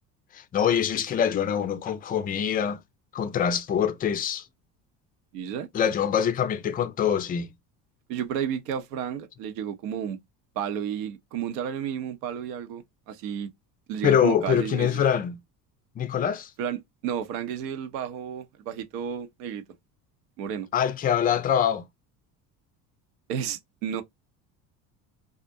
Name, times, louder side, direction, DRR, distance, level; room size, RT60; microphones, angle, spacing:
voice 1, 0.3-2.8 3.1-4.4 5.7-7.5 14.0-15.4 16.0-16.5 20.7-21.9, left 8 dB, 20° left, 0.3 m, -24 dB
voice 2, 5.3-5.7 8.1-10.2 10.6-13.5 13.9-15.0 16.6-19.6 20.4-20.7 23.3-24.0, right 8 dB, 75° right, 0.7 m, -32 dB
2.4 x 2.1 x 2.6 m
hypercardioid pair, 70°, 49 cm